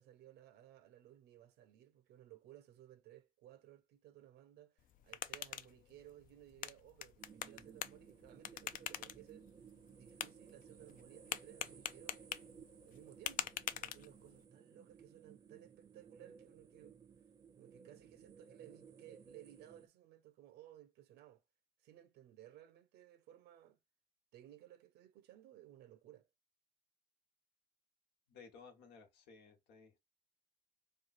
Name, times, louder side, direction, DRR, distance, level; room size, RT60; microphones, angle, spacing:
voice 1, 0.0-9.5 9.9-12.2 12.8-17.0 17.6-21.4 21.8-23.8 24.3-26.3, right 13 dB, 75° right, 0.6 m, -59 dB
sound 1, 4.8-14.4, left 11 dB, 55° left, 0.4 m, -46 dB
sound 2, 7.2-19.9, right 6 dB, 20° right, 0.3 m, -59 dB
voice 2, 28.3-30.0, left 5 dB, 90° left, 1.2 m, -58 dB
3.1 x 2.3 x 4.1 m
cardioid pair, 110°, 17 cm